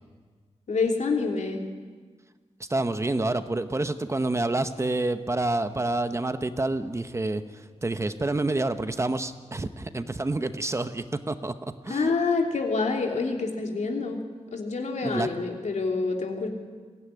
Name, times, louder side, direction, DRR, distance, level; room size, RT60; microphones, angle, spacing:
voice 1, 0.7-1.6 11.9-14.2 14.5-16.5, left 4 dB, 75° left, 2 dB, 3.0 m, -27 dB
voice 2, 2.6-12.1 15.0-15.3, right 2 dB, 25° right, 10 dB, 0.9 m, -28 dB
23.0 x 16.5 x 9.9 m, 1.5 s
wide cardioid pair, 155°, 12 cm